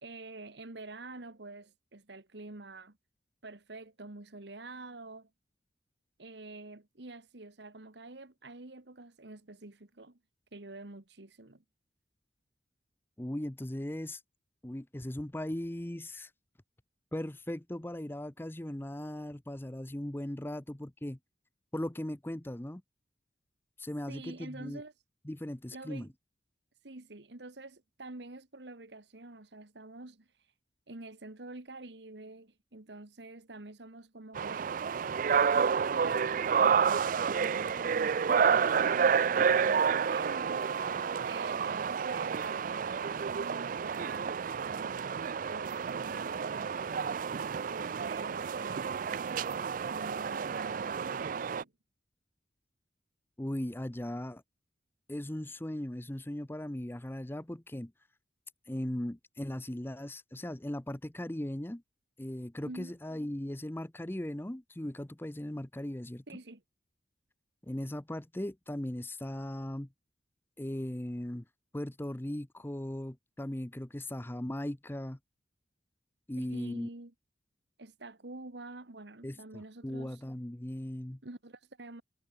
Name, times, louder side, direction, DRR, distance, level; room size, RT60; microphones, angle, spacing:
voice 1, 0.0-3.0 3.4-5.3 6.2-10.2 10.5-11.6 24.1-24.9 25.7-26.1 26.8-30.5 30.9-34.7 35.5-39.2 39.5-40.7 41.2-45.2 45.5-47.1 47.6-49.4 49.9-51.7 62.6-62.9 66.3-66.6 76.4-77.1 77.8-80.2 81.2-82.0, right 2 dB, 70° right, 1.7 m, -47 dB
voice 2, 13.2-14.2 14.6-16.3 17.1-21.2 21.7-22.8 23.8-24.8 25.3-26.1 53.4-54.4 55.1-57.9 58.7-61.8 62.2-66.2 67.6-69.9 70.6-71.4 71.7-75.2 76.3-76.9 79.2-81.2, left 1 dB, 10° left, 0.7 m, -38 dB
sound 1, 34.4-51.6, right 6 dB, 45° right, 0.4 m, -30 dB
head